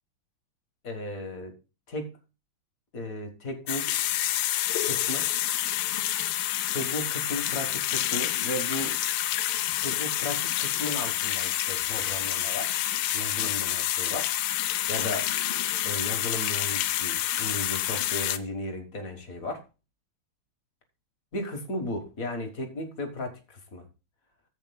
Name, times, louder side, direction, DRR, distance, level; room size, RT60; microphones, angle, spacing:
voice 1, 0.8-1.5 1.9-2.1 2.9-4.1 4.8-5.3 6.7-9.0 9.8-12.7 13.1-14.3 14.9-15.3 15.8-19.6 21.3-23.8, left 1 dB, 45° left, 4 dB, 1.7 m, -35 dB
sound 1, 3.7-18.4, left 13 dB, 85° left, 1.5 m, -28 dB
15.0 x 7.9 x 2.3 m, 0.29 s
omnidirectional pair, 2.3 m